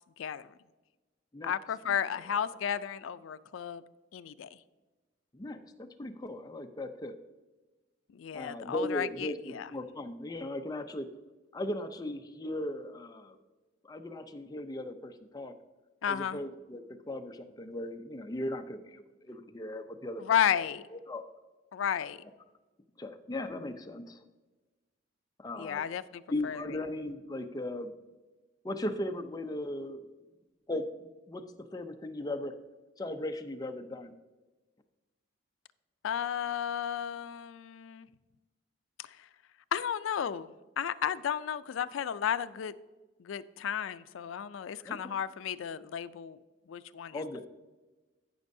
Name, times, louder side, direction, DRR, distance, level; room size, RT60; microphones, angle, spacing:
voice 1, 1.4-3.8 4.1-4.5 8.1-9.7 16.0-16.4 20.2-20.8 21.7-22.2 25.6-26.6 36.0-38.1 39.0-39.1 39.7-40.5 40.8-42.7 43.2-46.4 46.7-47.2, left 8 dB, 85° left, 0.4 m, -33 dB
voice 2, 5.3-7.1 8.3-11.1 11.5-13.4 13.8-15.5 16.1-20.6 20.9-21.3 23.0-24.2 25.4-25.8 26.3-27.9 28.6-30.0 30.7-31.4 31.7-32.5 33.0-34.1 44.8-45.1 47.1-47.4, left 1 dB, 20° left, 0.5 m, -38 dB
14.5 x 6.2 x 2.6 m
head